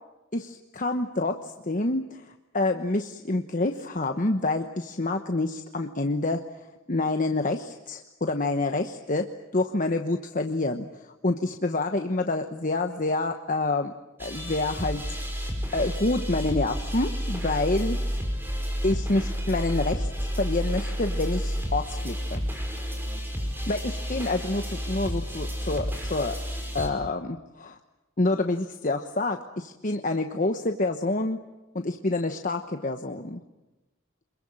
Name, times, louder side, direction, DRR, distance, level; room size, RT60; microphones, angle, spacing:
voice 1, 0.3-6.4 6.9-13.9 14.2-15.0 15.7-18.0 18.8-20.1 20.3-22.4 23.7-24.6 24.9-26.4 26.7-27.8 28.2-31.4 31.7-33.4, left 2 dB, 40° left, 6 dB, 1.1 m, -27 dB
sound 1, 14.2-26.9, equal, 10° right, 5.0 m, -30 dB
27.0 x 22.0 x 8.8 m, 1.0 s
head